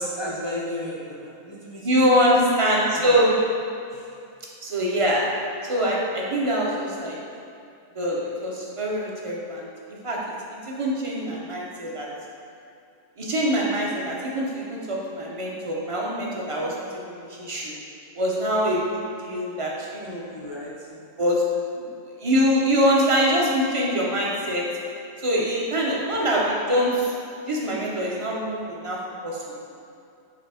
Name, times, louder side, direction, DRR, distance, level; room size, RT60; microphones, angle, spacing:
voice 1, 0.0-2.0 2.9-3.2 3.9-4.1 20.0-20.7, equal, 40° left, -5 dB, 0.4 m, -34 dB
voice 2, 1.8-3.3 4.6-5.2 5.7-7.2 7.9-9.7 10.0-12.1 13.2-17.7 18.2-20.2 21.2-21.4 21.8-21.9 22.2-24.6 25.2-27.1 27.5-29.0 29.2-29.6, equal, 30° right, -3 dB, 0.7 m, -24 dB
6.0 x 3.4 x 4.8 m, 2.6 s
omnidirectional pair, 1.4 m